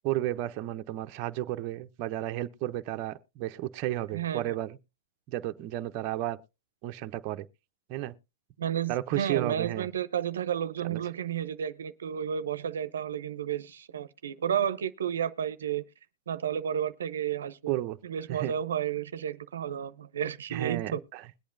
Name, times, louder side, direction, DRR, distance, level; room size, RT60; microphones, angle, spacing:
voice 1, 0.0-4.8 5.3-6.4 6.8-7.5 7.9-8.1 8.9-9.9 10.8-11.0 17.7-18.0 18.3-18.5 20.5-21.2, right 14 dB, 40° right, 0.6 m, -33 dB
voice 2, 4.1-4.6 8.6-15.8 16.3-17.8 18.0-21.0, right 9 dB, 85° right, 0.6 m, -32 dB
21.0 x 8.4 x 2.6 m
hypercardioid pair, 135°, 0 cm